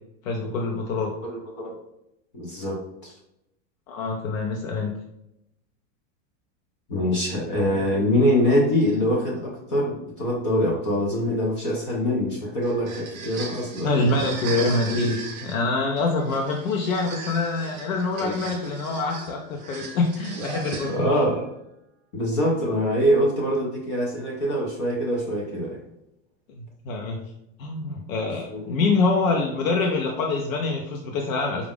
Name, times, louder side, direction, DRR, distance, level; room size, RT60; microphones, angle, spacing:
voice 1, 0.2-1.1 3.9-5.0 13.8-21.0 26.6-27.3 27.6-31.7, left 3 dB, 85° left, 1 dB, 0.7 m, -25 dB
voice 2, 1.2-1.8 2.3-3.1 6.9-14.1 18.2-18.3 20.9-21.4 22.1-25.8 28.5-28.6, equal, 25° left, -2 dB, 0.4 m, -24 dB
sound 1, 12.6-21.3, right 4 dB, 35° right, 0.5 m, -37 dB
4.9 x 2.4 x 3.5 m, 0.83 s
supercardioid pair, 175°, 39 cm